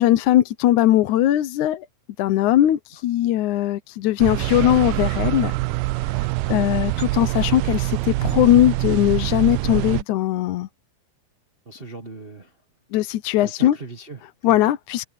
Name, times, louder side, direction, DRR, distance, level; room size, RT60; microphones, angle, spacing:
voice 1, 0.0-1.9 2.2-5.5 6.5-10.7 12.9-13.8 14.4-15.0, left 13 dB, 70° left, 2.1 m, -19 dB
sound 1, 4.2-10.0, right 20 dB, 80° right, 2.1 m, -24 dB
voice 2, 6.4-7.1 11.6-12.6 13.4-14.6, right 3 dB, 55° right, 0.6 m, -40 dB
omnidirectional pair, 3.8 m